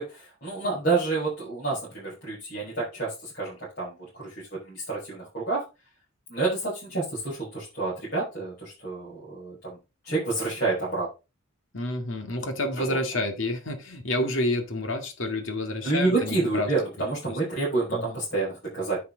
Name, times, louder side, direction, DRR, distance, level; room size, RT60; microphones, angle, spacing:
voice 1, 0.0-5.6 6.3-9.8 10.0-11.1 12.8-13.0 15.8-19.0, right 3 dB, 50° left, -7 dB, 5.7 m, -29 dB
voice 2, 11.7-16.7 17.3-17.4 17.9-18.1, left 1 dB, 70° left, 6 dB, 2.1 m, -29 dB
9.7 x 5.9 x 3.9 m, 0.28 s
head